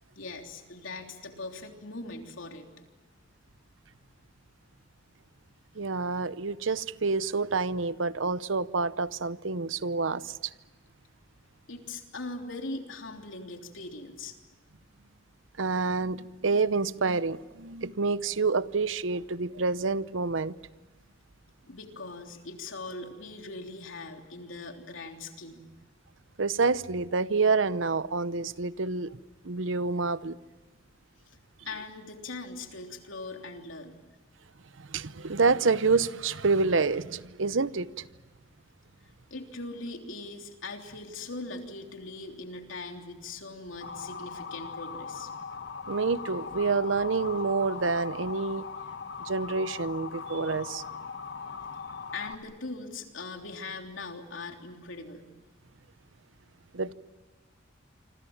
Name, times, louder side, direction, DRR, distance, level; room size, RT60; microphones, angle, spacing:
voice 1, 0.1-2.7 11.7-14.4 21.7-25.6 31.3-31.4 31.6-34.0 39.0-45.3 52.1-55.2, left 3 dB, 85° left, 3.3 m, -40 dB
voice 2, 5.8-10.5 15.6-20.6 26.4-29.2 29.4-30.4 34.8-38.0 45.9-48.6 49.2-50.8 56.7-56.9, right 4 dB, 80° right, 0.8 m, -28 dB
Motor vehicle (road) / Siren, 43.8-52.3, left 5 dB, 65° left, 1.5 m, -39 dB
27.0 x 25.5 x 7.3 m
head